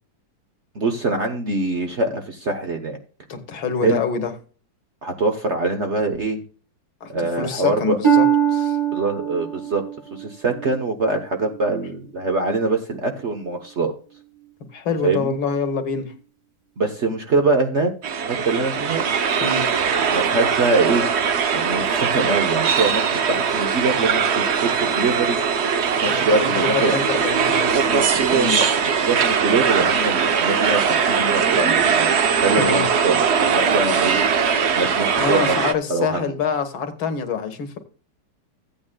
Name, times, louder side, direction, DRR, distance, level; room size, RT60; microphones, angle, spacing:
voice 1, 0.7-3.0 3.8-4.0 5.0-6.4 7.1-8.0 8.9-9.8 10.1-13.9 15.0-15.3 16.8-17.9 18.2-19.0 20.1-21.0 21.5-24.2 24.6-25.4 26.0-26.9 28.4-28.7 29.0-32.1 32.4-34.3 34.7-35.6 35.9-36.4, right 3 dB, 45° right, 1.0 m, -23 dB
voice 2, 3.3-4.3 7.0-8.3 8.5-8.8 14.7-16.1 19.4-19.7 26.1-28.6 32.6-32.9 35.2-37.8, left 5 dB, 75° left, 2.1 m, -26 dB
Harp, 8.0-11.8 12.3-12.7 13.4-13.5, right 8 dB, 25° right, 0.6 m, -23 dB
sound 1, 18.0-35.7, right 6 dB, 60° right, 0.6 m, -20 dB
15.0 x 8.9 x 2.2 m
omnidirectional pair, 2.2 m